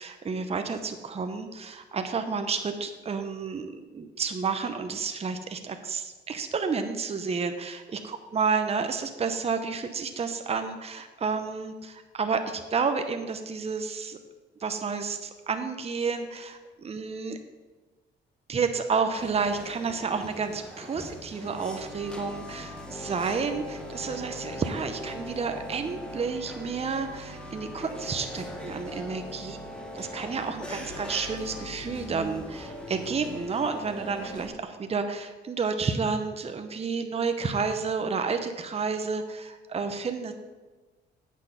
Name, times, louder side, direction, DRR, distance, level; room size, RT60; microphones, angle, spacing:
voice 1, 0.0-14.2 14.6-17.4 18.5-29.6 29.9-40.3, right 5 dB, 30° right, 7 dB, 0.8 m, -30 dB
sound 1, 19.2-34.5, left 1 dB, 5° left, 1.6 m, -40 dB
8.7 x 6.3 x 5.7 m, 1.2 s
cardioid pair, 90°, 20 cm